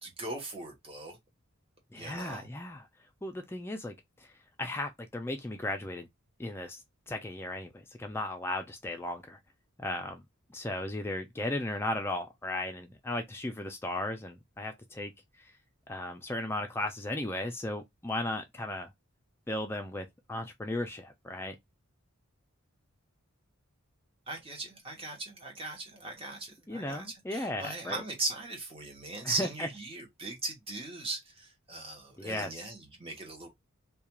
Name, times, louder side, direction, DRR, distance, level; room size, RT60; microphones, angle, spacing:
voice 1, 0.0-1.2 1.9-2.5 24.3-33.5, right 2 dB, 25° right, 0.8 m, -39 dB
voice 2, 1.9-2.8 3.2-4.3 4.6-6.1 6.4-6.8 7.1-9.4 9.8-10.2 10.5-15.1 15.9-18.9 19.5-21.6 26.7-28.0 29.2-29.7 32.2-32.5, left 1 dB, 10° left, 0.3 m, -36 dB
2.3 x 2.2 x 2.9 m
head